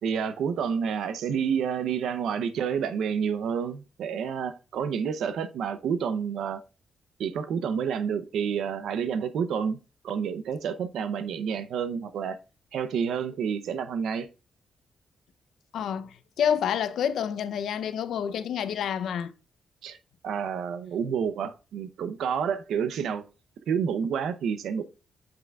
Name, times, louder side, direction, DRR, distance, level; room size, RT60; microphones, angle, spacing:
voice 1, 0.0-6.6 7.2-9.8 10.0-12.4 12.7-14.3 19.8-20.0 20.2-23.2 23.7-24.8, right 7 dB, 85° right, 0.6 m, -29 dB
voice 2, 15.7-19.3, left 8 dB, 75° left, 0.6 m, -28 dB
7.6 x 5.8 x 2.3 m
wide cardioid pair, 170°, 0 cm